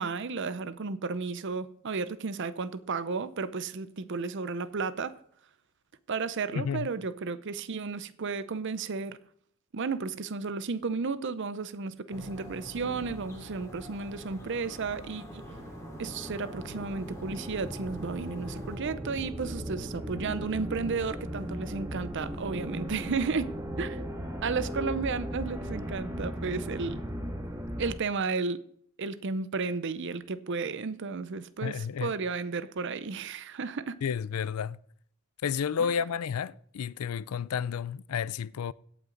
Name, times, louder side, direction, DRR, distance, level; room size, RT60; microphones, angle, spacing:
voice 1, 0.0-5.1 6.1-9.2 9.7-15.4 16.0-24.1 24.4-27.0 27.8-28.6 29.0-34.0 35.8-35.9, right 4 dB, 55° right, 0.6 m, -33 dB
voice 2, 6.6-6.9 31.6-32.1 34.0-34.8 35.4-38.7, left 7 dB, 90° left, 0.4 m, -31 dB
sound 1, 12.1-18.8, equal, 15° left, 2.8 m, -46 dB
sound 2, 14.4-27.9, equal, 20° right, 2.2 m, -38 dB
17.0 x 6.0 x 3.9 m
head